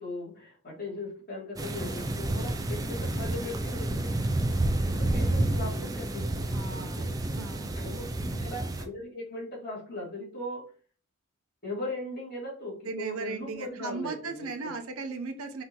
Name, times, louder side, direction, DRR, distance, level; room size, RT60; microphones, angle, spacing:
voice 1, 0.0-4.2 4.9-7.2 7.8-10.6 11.6-14.7, left 2 dB, 45° left, -5 dB, 2.3 m, -39 dB
sound 1, 1.6-8.9, right 1 dB, 15° right, 0.3 m, -30 dB
voice 2, 6.5-7.8 12.8-15.6, right 4 dB, 70° right, 5 dB, 0.7 m, -37 dB
5.6 x 2.8 x 2.9 m, 0.41 s
head